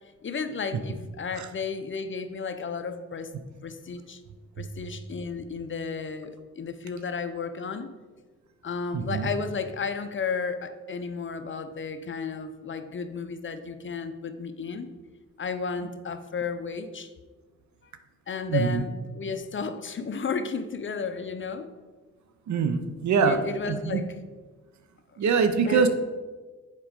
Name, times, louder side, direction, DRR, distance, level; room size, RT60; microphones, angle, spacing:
voice 1, 0.2-3.3 3.6-4.2 4.6-7.9 8.6-14.9 15.4-17.1 17.8-17.9 18.3-21.7 23.2-24.1 25.6-25.8, left 5 dB, 40° left, 9 dB, 0.7 m, -33 dB
voice 2, 8.9-9.3 18.5-18.8 22.5-23.4 23.7-24.0 25.2-25.9, right 5 dB, 75° right, 9 dB, 0.8 m, -24 dB
7.5 x 4.9 x 5.1 m, 1.4 s
cardioid pair, 85°, 29 cm